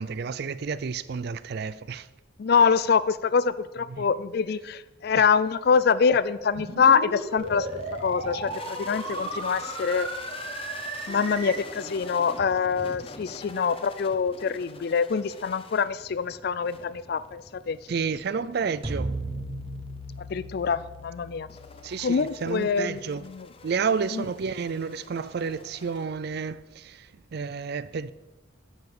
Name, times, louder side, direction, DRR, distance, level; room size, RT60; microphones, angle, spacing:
voice 1, 0.0-2.1 3.9-4.1 5.1-5.3 17.9-19.2 21.8-23.3 23.6-28.1, right 5 dB, 50° right, 0.4 m, -31 dB
voice 2, 2.4-7.7 8.0-10.1 11.1-17.8 20.3-21.5 22.0-23.5 24.1-24.2, left 6 dB, 50° left, 0.4 m, -25 dB
sound 1, 6.5-11.5, right 2 dB, 75° right, 3.0 m, -35 dB
sound 2, 7.4-26.6, left 3 dB, 25° left, 0.7 m, -45 dB
sound 3, 18.8-23.2, right 1 dB, 30° right, 1.0 m, -37 dB
9.2 x 5.7 x 7.0 m
head